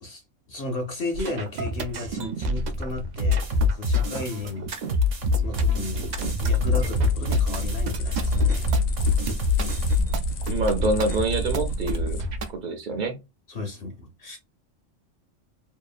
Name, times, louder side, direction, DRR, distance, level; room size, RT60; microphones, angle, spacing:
voice 1, 0.0-4.7 5.3-6.1 6.4-8.6 13.5-14.4, left 2 dB, 55° left, 0.7 m, -34 dB
sound 1, 1.1-12.5, right 2 dB, 85° right, 0.3 m, -32 dB
sound 2, 3.2-10.0, left 4 dB, 65° right, 1.2 m, -24 dB
sound 3, 4.9-12.5, equal, 85° left, 1.0 m, -30 dB
voice 2, 10.5-12.2 12.5-13.2, right 2 dB, 50° right, 0.6 m, -26 dB
2.8 x 2.3 x 2.3 m
omnidirectional pair, 1.3 m